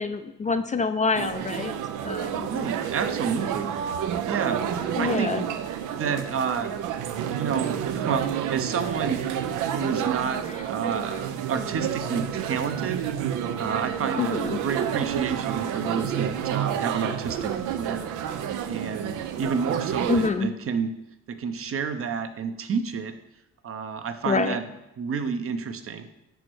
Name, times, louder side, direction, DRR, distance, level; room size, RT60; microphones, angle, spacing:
voice 1, 0.0-1.7 2.0-2.5 5.0-5.4 14.2-14.6 20.1-20.5 24.3-24.6, left 4 dB, 25° left, 8 dB, 0.4 m, -26 dB
sound 1, 1.1-20.3, right 9 dB, 90° right, 0.6 m, -29 dB
voice 2, 2.4-3.7 4.3-4.6 5.0-5.4 5.9-6.8 7.3-9.2 9.7-13.1 13.6-18.1 18.7-20.9 21.3-23.1 23.6-24.7 25.0-26.1, right 6 dB, 45° right, 8 dB, 0.7 m, -30 dB
5.2 x 4.7 x 6.1 m, 0.90 s
cardioid pair, 90°, 30 cm